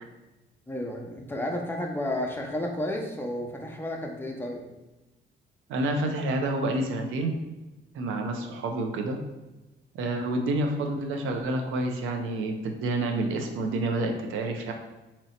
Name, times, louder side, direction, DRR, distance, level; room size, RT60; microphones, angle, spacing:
voice 1, 0.7-4.6, left 1 dB, 10° left, 0 dB, 0.7 m, -32 dB
voice 2, 5.7-7.3 7.9-9.2 9.9-14.7, right 2 dB, 85° right, 4 dB, 0.6 m, -28 dB
2.9 x 2.7 x 4.2 m, 1.1 s
cardioid pair, 90°, 20 cm